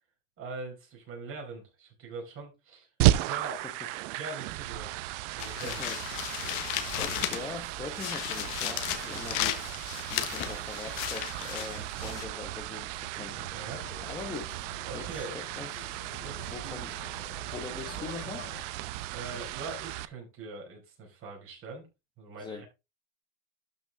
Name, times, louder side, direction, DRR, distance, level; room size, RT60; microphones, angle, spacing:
voice 1, 0.4-3.6 4.2-5.8 7.1-7.2 9.1-9.2 13.5-13.9 14.8-15.3 16.2-16.9 17.6-18.1 18.9-21.9 22.2-22.7, right 3 dB, 30° right, 5.0 m, -43 dB
sound 1, 3.0-20.0, right 15 dB, 65° right, 0.8 m, -34 dB
sound 2, 5.4-7.6 8.0-12.3, left 14 dB, 50° left, 1.4 m, -35 dB
voice 2, 5.6-6.0 7.0-13.4 14.1-14.7 14.9-15.9 16.4-16.9 17.5-18.5 22.4-22.6, left 4 dB, 10° left, 1.0 m, -42 dB
sound 3, 13.1-18.6, left 8 dB, 80° left, 3.0 m, -49 dB
12.0 x 5.7 x 3.5 m
supercardioid pair, 150°, 40 cm